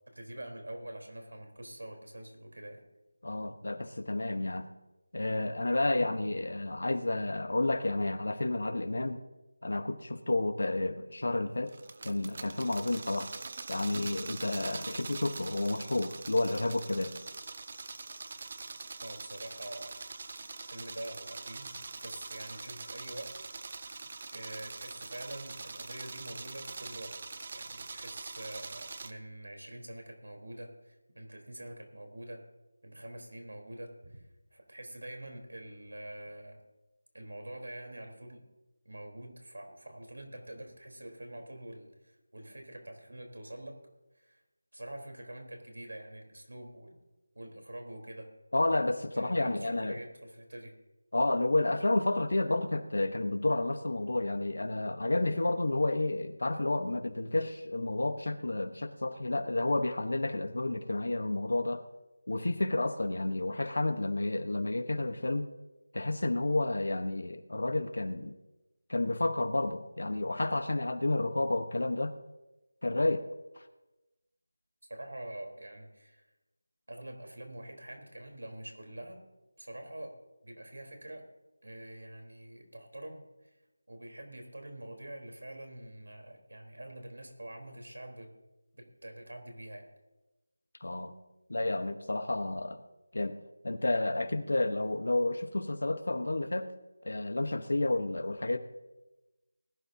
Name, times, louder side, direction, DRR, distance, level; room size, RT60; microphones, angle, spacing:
voice 1, 0.1-2.8 19.0-21.7 22.0-23.3 23.7-24.0 24.3-27.2 27.5-32.4 32.8-36.6 37.1-38.4 38.9-43.8 44.1-44.4 44.7-47.0 47.3-48.3 49.1-50.7 74.9-76.3 76.9-79.2 79.6-80.2 80.4-81.3 81.6-83.5 83.9-88.3 88.7-89.9, right 1 dB, 85° right, 3 dB, 3.8 m, -45 dB
voice 2, 3.2-4.7 5.1-9.2 9.6-11.7 12.0-13.3 13.7-17.1 48.5-50.0 51.1-61.9 62.3-65.5 65.9-68.4 68.9-72.1 72.8-73.3 90.8-91.1 91.5-92.8 93.1-93.4 93.6-96.7 97.0-98.6, left 2 dB, 60° left, 10 dB, 1.1 m, -30 dB
sound 1, 11.7-29.1, right 4 dB, 25° right, 0.5 m, -43 dB
20.0 x 11.5 x 2.8 m, 1.0 s
figure-of-eight pair, 175°, 0 cm